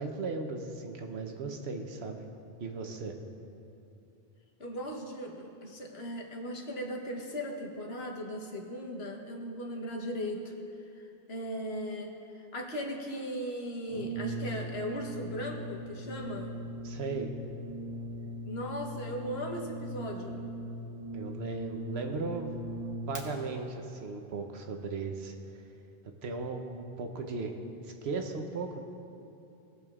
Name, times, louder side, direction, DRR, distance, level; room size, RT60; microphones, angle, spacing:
voice 1, 0.0-2.2 2.6-3.1 16.8-17.3 21.1-22.6 23.1-25.3 26.2-27.5 27.8-28.8, right 4 dB, 85° right, 4 dB, 1.1 m, -37 dB
voice 2, 4.6-10.5 10.9-16.6 18.4-20.5, equal, 80° left, 1 dB, 1.3 m, -38 dB
Brass instrument, 13.9-23.2, right 1 dB, 20° right, 1.0 m, -39 dB
18.5 x 6.9 x 2.4 m, 2.8 s
omnidirectional pair, 1.0 m